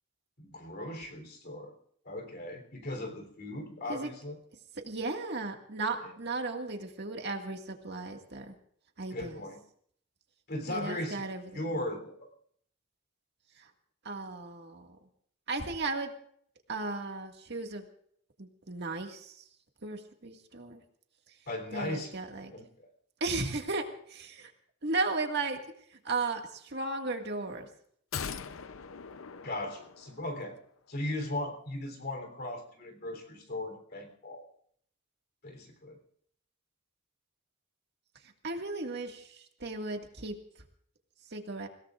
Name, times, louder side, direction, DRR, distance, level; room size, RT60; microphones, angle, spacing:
voice 1, 0.4-1.7 2.1-4.4 9.1-9.6 10.5-11.2 11.5-12.2 21.5-22.1 22.5-22.9 29.4-30.6 30.9-34.5 35.4-36.0, left 1 dB, 50° left, 4 dB, 3.5 m, -37 dB
voice 2, 4.8-8.5 9.0-9.4 10.7-11.6 13.6-13.7 14.0-15.0 15.5-16.1 16.7-17.8 18.4-19.5 19.8-20.8 21.3-21.4 21.7-22.5 23.2-24.5 24.8-25.6 25.9-27.7 38.4-40.4 41.3-41.7, right 3 dB, 55° right, 3 dB, 2.0 m, -35 dB
sound 1, 28.1-30.5 30.8-30.9, left 6 dB, 75° left, 0.7 m, -41 dB
28.5 x 17.5 x 2.5 m, 0.65 s
head